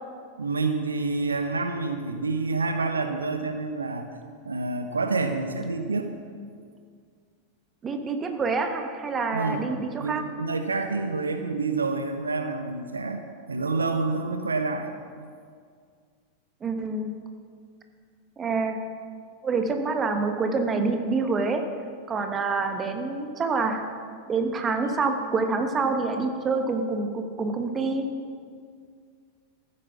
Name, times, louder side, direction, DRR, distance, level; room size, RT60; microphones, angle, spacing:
voice 1, 0.4-4.1 4.4-6.1 9.3-9.7 10.0-14.9 22.7-22.8, right 3 dB, 75° right, 7 dB, 0.9 m, -28 dB
voice 2, 7.8-10.2 16.6-17.1 18.4-18.8 19.4-21.6 22.1-23.8 24.3-28.1, right 4 dB, 20° right, 5 dB, 1.5 m, -27 dB
15.0 x 9.7 x 6.0 m, 2.1 s
figure-of-eight pair, 90°, 0 cm